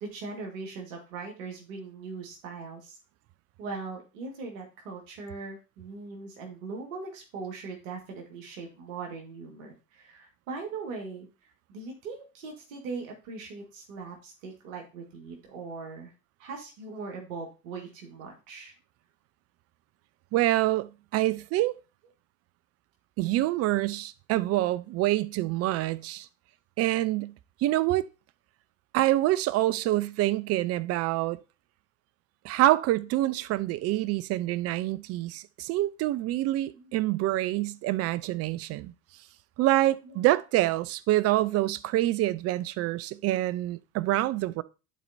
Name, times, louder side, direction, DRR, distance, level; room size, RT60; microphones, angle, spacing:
voice 1, 0.0-3.0 3.6-11.3 11.7-16.1 16.4-18.7 36.7-37.1 40.0-40.3, right 4 dB, 65° right, 1.8 m, -40 dB
voice 2, 20.3-21.8 23.2-26.3 26.8-27.3 27.6-28.1 28.9-31.4 32.4-38.9 39.6-44.6, right 15 dB, 35° right, 0.4 m, -26 dB
11.0 x 4.3 x 2.7 m
figure-of-eight pair, 70°, 42 cm